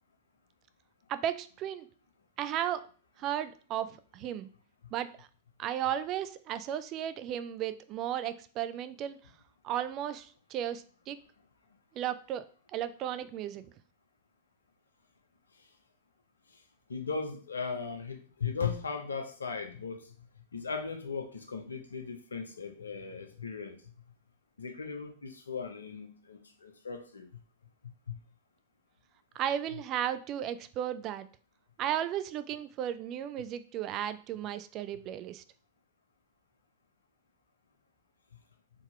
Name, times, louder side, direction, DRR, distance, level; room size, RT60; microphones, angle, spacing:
voice 1, 1.1-1.9 2.4-2.9 3.2-4.5 4.9-5.3 5.6-9.2 9.6-11.2 12.0-12.4 12.7-13.6 29.3-31.3 31.8-35.4, right 10 dB, 40° right, 13 dB, 0.4 m, -34 dB
voice 2, 16.9-20.1 20.5-23.9 24.6-27.4 27.8-28.2 29.7-29.8, left 5 dB, 80° left, 6 dB, 0.7 m, -38 dB
3.8 x 2.8 x 4.4 m, 0.41 s
figure-of-eight pair, 95°, 0 cm